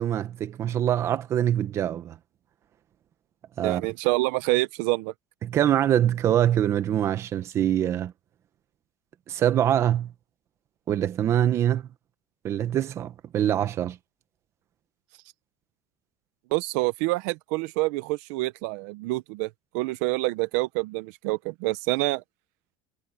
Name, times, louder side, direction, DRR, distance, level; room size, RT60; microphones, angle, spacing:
voice 1, 0.0-2.2 3.6-3.8 5.4-8.1 9.3-10.1 10.9-11.9 12.4-14.0, right 11 dB, 30° right, 1.1 m, -24 dB
voice 2, 3.6-5.1 16.5-22.2, right 22 dB, 65° right, 0.7 m, -27 dB
cardioid pair, 175°, 10 cm